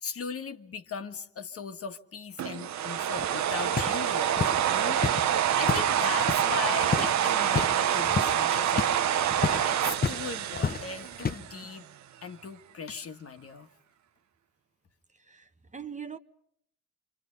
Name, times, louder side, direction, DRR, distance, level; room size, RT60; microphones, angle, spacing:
voice 1, 0.0-5.0 5.6-9.3 9.6-11.9 12.2-13.7, left 5 dB, 50° left, 1.6 m, -38 dB
sound 1, 2.4-11.6, right 10 dB, 65° right, 0.9 m, -27 dB
sound 2, 3.2-6.5 6.8-7.2 7.4-7.7 8.0-10.2 10.5-11.4, left 5 dB, 30° left, 1.1 m, -31 dB
voice 2, 15.2-16.2, right 7 dB, 25° right, 1.1 m, -42 dB
28.5 x 25.5 x 5.4 m
cardioid pair, 90°, 30 cm